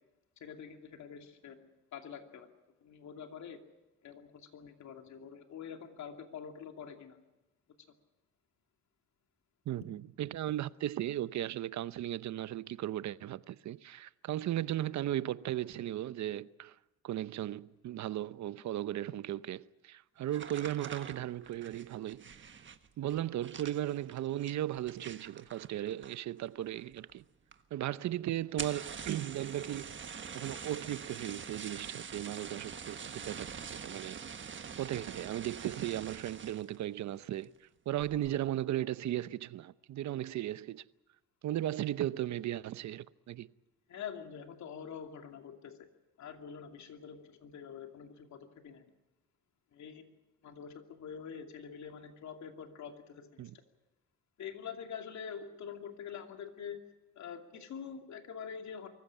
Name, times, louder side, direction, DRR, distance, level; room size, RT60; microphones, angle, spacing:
voice 1, 0.4-2.5 2.8-3.6 4.0-7.2 43.9-45.9 46.2-48.8 49.7-50.0 50.4-53.5 54.4-56.8 57.2-58.9, left 7 dB, 65° left, 2.7 m, -46 dB
voice 2, 9.7-16.8 17.0-22.5 23.0-27.2 27.7-30.0 30.3-34.2 34.8-40.9 41.4-43.5 53.4-53.6, right 13 dB, 65° right, 0.8 m, -36 dB
sound 1, 20.3-26.4 26.7-27.2 27.5-27.6 27.9-28.0 28.4-36.8 37.2-37.6 38.0-38.4, right 6 dB, 40° right, 1.5 m, -45 dB
24.0 x 15.0 x 10.0 m
cardioid pair, 90°, 30 cm